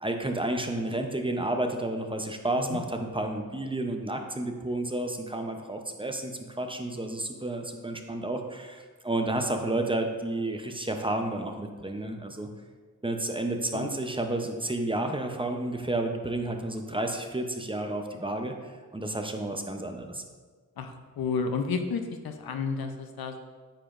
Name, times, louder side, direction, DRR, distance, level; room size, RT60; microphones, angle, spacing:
voice 1, 0.0-12.5 13.0-18.5 18.9-20.2, right 1 dB, 15° right, 4 dB, 0.6 m, -31 dB
voice 2, 20.8-23.4, left 5 dB, 90° left, 6 dB, 0.6 m, -32 dB
8.7 x 4.9 x 2.5 m, 1.5 s
cardioid pair, 65°, 35 cm